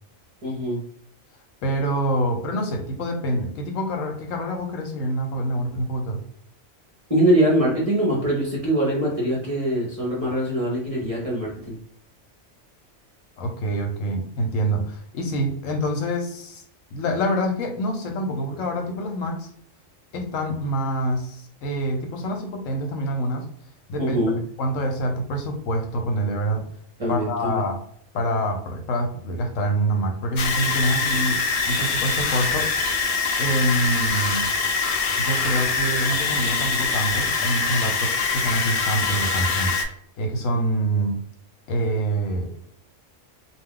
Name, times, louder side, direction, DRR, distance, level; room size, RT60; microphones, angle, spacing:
voice 1, 0.4-0.8 7.1-11.8 24.0-24.4 27.0-27.6, right 1 dB, 35° right, -4 dB, 0.6 m, -23 dB
voice 2, 1.6-6.2 13.4-16.6 16.9-19.5 20.1-23.5 23.9-24.2 24.6-26.7 27.1-27.8 28.1-32.7 33.4-34.5 35.2-41.2 41.7-42.5, right 1 dB, 80° left, 3 dB, 1.0 m, -26 dB
sound 1, 30.4-39.8, left 4 dB, 60° left, 0.6 m, -24 dB
2.3 x 2.3 x 3.6 m, 0.62 s
omnidirectional pair, 1.4 m